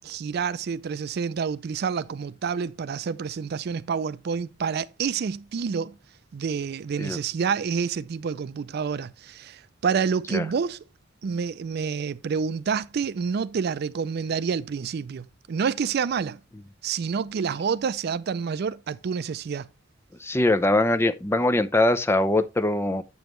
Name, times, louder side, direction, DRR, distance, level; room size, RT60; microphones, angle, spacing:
voice 1, 0.0-6.0 6.3-10.8 11.2-16.4 16.8-19.7, right 6 dB, 55° right, 0.4 m, -28 dB
voice 2, 20.2-23.0, left 2 dB, 15° left, 0.5 m, -22 dB
7.7 x 7.1 x 3.0 m
head